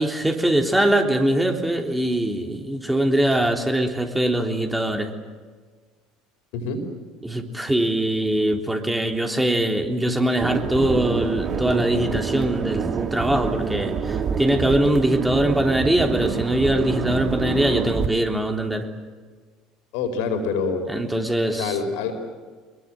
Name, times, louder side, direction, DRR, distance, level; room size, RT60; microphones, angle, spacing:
voice 1, 0.0-5.1 7.2-18.9 20.9-21.8, right 1 dB, 10° right, 3 dB, 3.4 m, -22 dB
sound 1, 10.4-18.1, right 6 dB, 40° right, 1.9 m, -27 dB
voice 2, 19.9-20.8 21.5-22.1, left 5 dB, 65° left, 6 dB, 4.6 m, -25 dB
26.0 x 22.5 x 7.7 m, 1.5 s
figure-of-eight pair, 65°, 0 cm